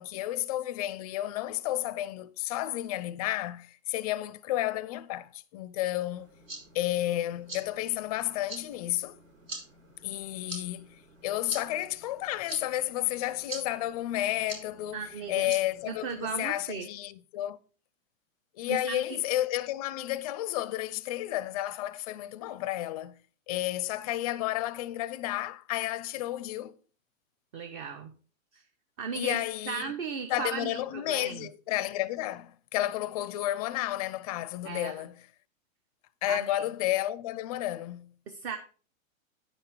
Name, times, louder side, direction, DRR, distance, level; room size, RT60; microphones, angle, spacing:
voice 1, 0.0-6.3 6.7-9.2 10.0-17.6 18.5-23.2 23.5-26.8 29.1-29.9 30.3-35.2 36.2-38.1, left 14 dB, 30° left, 0.4 m, -32 dB
sound 1, 6.2-16.4, right 2 dB, 80° right, 5.5 m, -46 dB
voice 2, 14.9-15.5 15.9-16.9 18.7-19.2 27.5-28.1 28.5-28.6 29.0-29.4 29.7-31.5 34.6-34.9 36.3-36.6 38.3-38.6, right 6 dB, 40° right, 1.0 m, -36 dB
9.7 x 5.7 x 4.8 m
hypercardioid pair, 135°, 40 cm